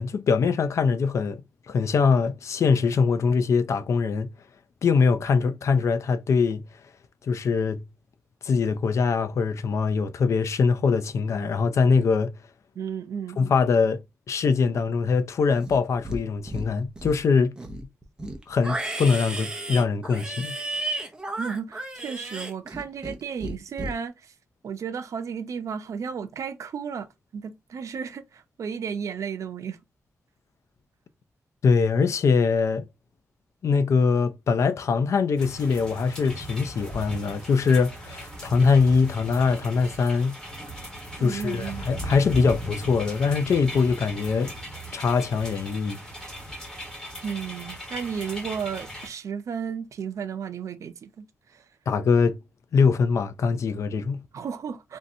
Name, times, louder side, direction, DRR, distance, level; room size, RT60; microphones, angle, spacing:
voice 1, 0.0-1.4 1.7-4.3 4.8-6.6 7.3-7.8 8.4-12.3 13.4-14.0 14.3-17.6 18.5-20.6 31.6-32.9 33.6-40.4 41.2-44.5 44.9-46.0 51.9-52.3 52.7-54.2, left 5 dB, 65° left, 0.4 m, -22 dB
voice 2, 12.8-13.4 21.4-24.3 24.6-29.8 41.2-41.8 47.2-51.6 54.3-55.0, right 7 dB, 75° right, 0.5 m, -33 dB
Livestock farm animals working animals, 15.6-16.2 16.5-17.2 17.6-23.2 23.4-23.9, right 1 dB, 15° right, 0.6 m, -33 dB
sound 1, 35.4-49.1, equal, 10° left, 1.8 m, -38 dB
3.1 x 2.7 x 2.6 m
wide cardioid pair, 140°, 5 cm